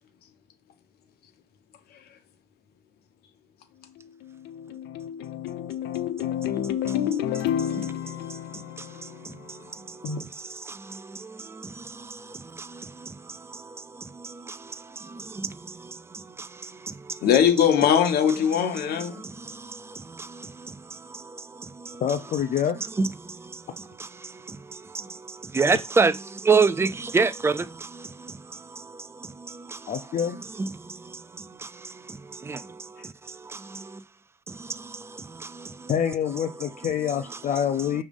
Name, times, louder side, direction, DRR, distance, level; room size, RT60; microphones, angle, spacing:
sound 1, 4.0-9.6, left 10 dB, 90° left, 0.6 m, -30 dB
voice 1, 6.5-17.3 18.5-22.2 22.7-34.0 34.5-35.9 36.3-37.4 37.8-38.0, right 4 dB, 15° right, 0.5 m, -31 dB
voice 2, 17.2-19.2, left 8 dB, 70° left, 1.1 m, -20 dB
voice 3, 22.0-22.8 29.9-30.4 35.9-38.0, left 8 dB, 50° left, 0.6 m, -26 dB
6.2 x 3.3 x 5.3 m
cardioid pair, 110°, 17 cm